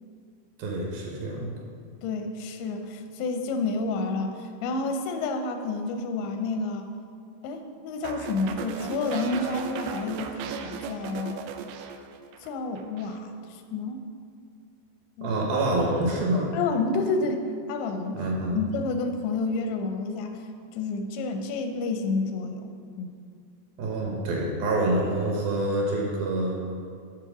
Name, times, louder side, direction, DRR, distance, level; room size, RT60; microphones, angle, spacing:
voice 1, 0.6-1.5 15.2-16.5 18.1-18.6 23.8-26.6, right 1 dB, 70° right, -2 dB, 2.5 m, -26 dB
voice 2, 2.0-6.9 7.4-11.5 12.4-14.1 15.2-15.3 16.5-18.2 18.5-20.4 20.7-22.7 23.0-23.2, left 3 dB, 90° left, 6 dB, 2.9 m, -30 dB
sound 1, 8.0-12.5 12.8-13.2, right 7 dB, 90° right, 2.1 m, -36 dB
9.9 x 4.2 x 6.0 m, 2.3 s
omnidirectional pair, 5.0 m